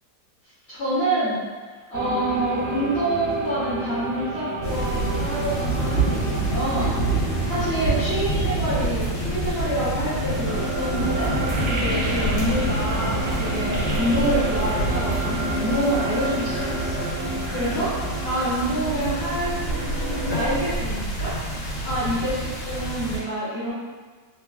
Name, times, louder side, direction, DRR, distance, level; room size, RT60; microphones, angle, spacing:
voice 1, 0.7-11.3 11.7-19.6 20.3-21.3 21.8-23.7, right 1 dB, 50° left, -12 dB, 0.8 m, -27 dB
sound 1, 1.9-20.5, right 1 dB, 75° right, 1.1 m, -30 dB
sound 2, 4.6-23.2, right 2 dB, 80° left, 1.4 m, -27 dB
3.2 x 2.2 x 2.2 m, 1.4 s
omnidirectional pair, 2.0 m